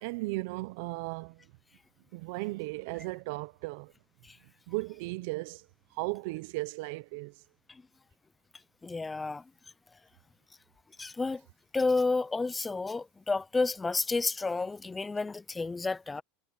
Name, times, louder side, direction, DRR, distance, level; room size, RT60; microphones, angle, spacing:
voice 1, 0.0-1.5 2.1-3.9 4.7-7.4, right 23 dB, 60° right, 0.5 m, -36 dB
voice 2, 8.8-9.4 11.0-11.4 11.7-16.2, left 3 dB, 10° left, 0.3 m, -30 dB
supercardioid pair, 165°, 0 cm